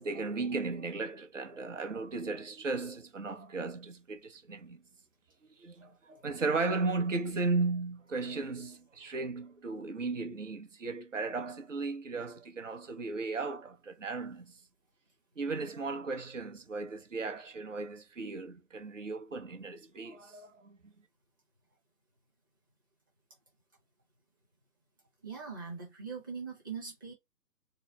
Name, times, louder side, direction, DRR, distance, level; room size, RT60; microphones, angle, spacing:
voice 1, 0.0-4.8 5.6-14.5 15.4-20.8, right 3 dB, 50° right, 1.0 m, -35 dB
voice 2, 25.2-27.1, right 5 dB, 15° right, 0.9 m, -41 dB
4.0 x 2.1 x 3.9 m
figure-of-eight pair, 145°, 49 cm